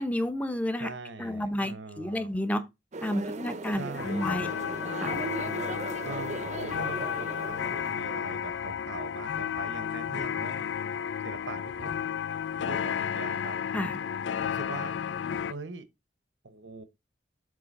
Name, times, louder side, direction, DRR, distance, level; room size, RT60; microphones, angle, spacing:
voice 1, 0.0-0.9 1.2-2.6 3.0-4.5 5.0-5.1 13.7-14.0, left 1 dB, 10° left, 0.8 m, -31 dB
voice 2, 0.8-2.3 3.7-4.6 5.5-5.8 6.0-10.7 11.2-12.1 12.7-13.6 14.3-15.0 15.5-15.9 16.4-16.8, right 3 dB, 85° right, 0.9 m, -42 dB
sound 1, 2.9-8.4, right 3 dB, 40° right, 0.7 m, -38 dB
sound 2, 4.0-15.5, left 8 dB, 70° left, 0.3 m, -32 dB
7.5 x 3.3 x 5.3 m
head